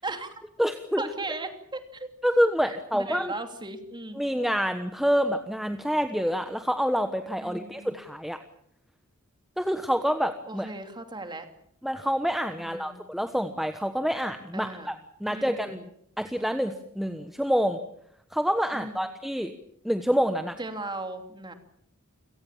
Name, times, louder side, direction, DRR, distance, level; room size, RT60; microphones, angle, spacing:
voice 1, 0.0-0.3 1.0-2.1 2.6-4.2 7.4-8.0 10.5-11.5 12.6-13.0 14.5-14.9 15.3-15.7 18.7-19.1 20.6-21.5, right 2 dB, 20° right, 7 dB, 2.9 m, -37 dB
voice 2, 0.6-1.0 2.2-3.3 4.1-8.4 9.6-10.7 11.8-14.9 15.2-15.8 16.2-17.8 18.3-19.5 19.8-20.6, equal, ahead, 7 dB, 1.2 m, -27 dB
29.0 x 18.0 x 7.3 m, 0.72 s
head